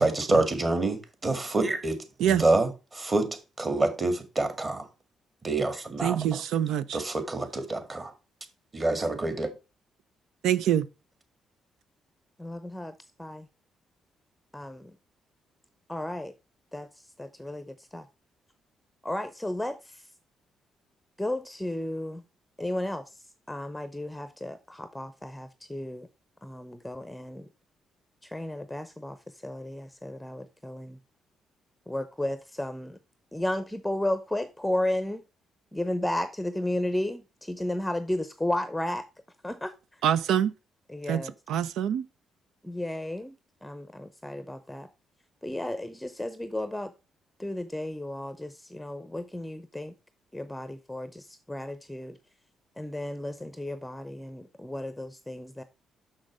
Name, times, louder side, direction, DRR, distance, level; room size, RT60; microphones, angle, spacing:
voice 1, 0.0-4.9 5.4-6.4 6.9-8.1 8.7-9.5, right 2 dB, 30° right, 1.9 m, -27 dB
voice 2, 6.0-7.0 10.4-10.9 40.0-40.5 41.1-41.2 41.5-42.0, right 10 dB, 85° right, 0.5 m, -25 dB
voice 3, 12.4-13.5 14.5-15.0 15.9-16.3 16.7-18.1 19.0-20.1 21.2-22.2 22.6-26.1 26.4-27.5 28.2-31.0 31.9-33.0 33.3-35.2 35.7-39.1 39.4-40.0 40.9-41.3 42.6-44.9 45.4-46.9 47.4-49.9 50.3-52.2 52.8-55.6, left 1 dB, 5° left, 0.7 m, -33 dB
6.3 x 6.3 x 4.9 m
cardioid pair, 90°, 0 cm